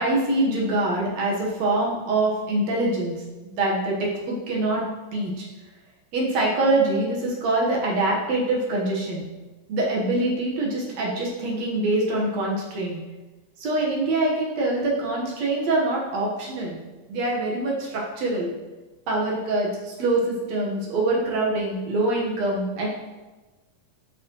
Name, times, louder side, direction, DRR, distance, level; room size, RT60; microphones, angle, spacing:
voice 1, 0.0-3.2 3.6-4.8 5.1-5.5 6.1-9.3 9.7-13.0 13.6-16.8 17.1-18.5 19.1-22.9, right 2 dB, 60° right, -3 dB, 2.4 m, -24 dB
12.5 x 5.2 x 3.1 m, 1.2 s
omnidirectional pair, 3.7 m